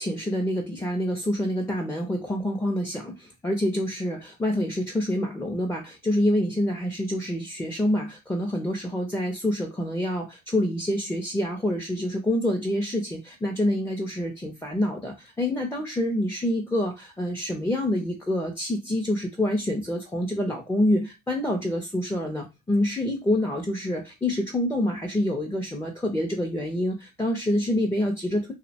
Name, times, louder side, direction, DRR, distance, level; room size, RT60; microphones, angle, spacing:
voice 1, 0.0-28.5, left 1 dB, 10° left, 1 dB, 0.4 m, -27 dB
2.6 x 2.1 x 2.6 m, 0.25 s
cardioid pair, 90°, 30 cm